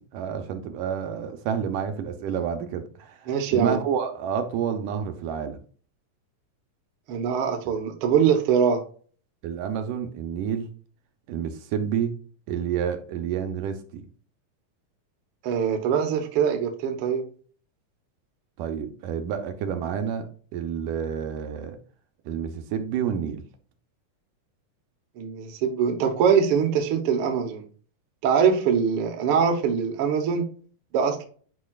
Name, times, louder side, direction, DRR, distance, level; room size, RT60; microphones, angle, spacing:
voice 1, 0.0-5.6 9.4-10.7 11.3-12.2 12.5-14.0 18.6-20.3 20.5-21.8 22.3-23.4, right 8 dB, 80° right, 6 dB, 2.4 m, -29 dB
voice 2, 3.3-3.8 7.1-8.8 15.4-17.2 25.2-27.6 28.2-30.4 30.9-31.2, right 7 dB, 60° right, 4 dB, 1.6 m, -23 dB
10.5 x 4.9 x 2.4 m, 0.43 s
omnidirectional pair, 3.7 m